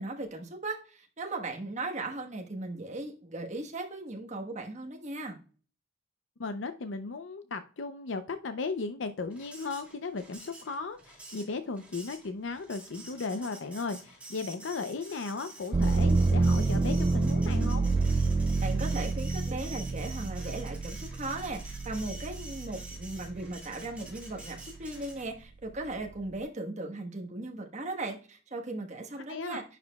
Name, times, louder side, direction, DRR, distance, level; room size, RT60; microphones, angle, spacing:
voice 1, 0.0-5.4 18.6-29.6, right 2 dB, 40° right, 3 dB, 1.2 m, -37 dB
voice 2, 6.4-17.9 29.3-29.6, left 4 dB, 75° left, 9 dB, 0.6 m, -36 dB
Printer, 9.3-25.4, right 1 dB, 5° right, 2.4 m, -48 dB
sound 1, 15.7-23.5 24.0-24.8, right 3 dB, 25° right, 0.3 m, -28 dB
10.5 x 5.0 x 2.2 m, 0.37 s
head